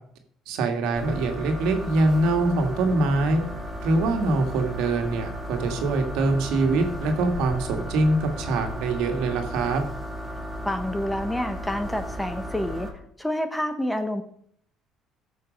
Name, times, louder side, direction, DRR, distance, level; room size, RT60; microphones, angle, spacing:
voice 1, 0.5-3.4 3.8-9.8, right 2 dB, 85° right, 4 dB, 1.9 m, -24 dB
sound 1, 1.0-12.9, equal, 10° right, 3.7 m, -35 dB
voice 2, 10.6-12.9 13.2-14.2, left 1 dB, 5° left, 8 dB, 1.1 m, -28 dB
15.5 x 6.5 x 5.3 m, 0.65 s
cardioid pair, 115°, 0 cm